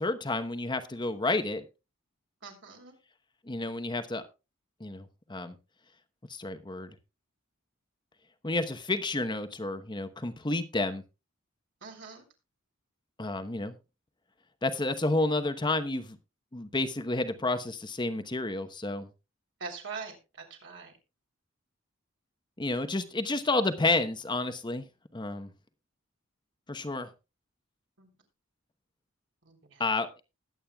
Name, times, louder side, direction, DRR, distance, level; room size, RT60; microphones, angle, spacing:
voice 1, 0.0-1.7 3.5-4.2 4.8-5.6 6.3-6.9 8.4-11.0 13.2-13.7 14.6-16.2 16.5-19.1 22.6-24.8 25.1-25.5 26.7-27.1 29.8-30.1, left 2 dB, 20° left, 1.0 m, -30 dB
voice 2, 2.4-2.9 11.8-12.2 19.6-20.2 20.5-20.9 28.0-28.1 29.4-29.8, right 5 dB, 65° right, 3.4 m, -42 dB
20.0 x 8.7 x 2.3 m
head